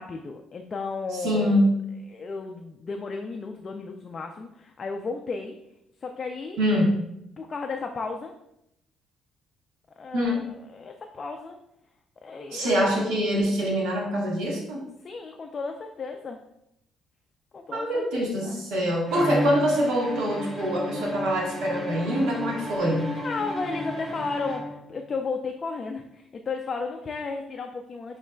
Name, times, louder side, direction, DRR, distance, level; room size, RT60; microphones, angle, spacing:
voice 1, 0.0-1.7 2.1-5.6 6.0-6.6 7.4-8.3 10.0-11.6 12.2-12.7 15.0-16.4 17.5-18.7 23.2-28.2, left 4 dB, 30° left, 3 dB, 0.3 m, -34 dB
voice 2, 1.2-1.8 6.6-7.0 10.1-10.4 12.5-14.8 17.7-23.2, equal, 90° right, -3 dB, 1.3 m, -24 dB
Bowed string instrument, 19.1-25.1, equal, 20° right, 1.0 m, -32 dB
6.0 x 3.1 x 2.2 m, 0.80 s
cardioid pair, 135°, 0 cm